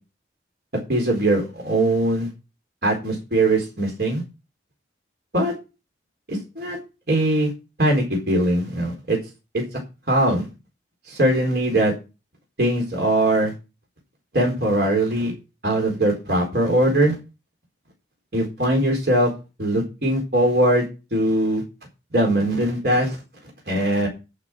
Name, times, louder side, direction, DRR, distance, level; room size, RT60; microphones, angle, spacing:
voice 1, 0.9-2.3 2.8-4.2 5.3-5.5 6.3-6.8 7.1-7.5 7.8-9.2 9.5-9.6 10.1-10.5 11.1-11.9 12.6-13.5 14.3-15.3 15.6-17.2 18.3-19.3 19.6-20.9 21.1-21.6 22.1-23.2 23.7-24.1, right 1 dB, 60° right, 0 dB, 4.2 m, -21 dB
11.5 x 5.9 x 6.1 m, 0.28 s
head